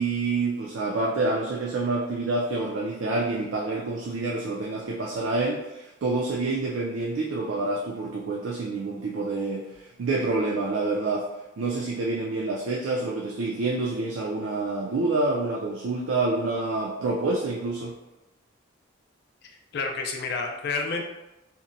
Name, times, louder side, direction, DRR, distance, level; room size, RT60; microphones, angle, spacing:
voice 1, 0.0-9.7 10.0-11.3 11.6-17.9, right 3 dB, 70° right, -2 dB, 0.4 m, -27 dB
voice 2, 19.4-21.0, left 4 dB, 50° left, 1 dB, 0.4 m, -30 dB
2.8 x 2.1 x 2.5 m, 0.96 s
head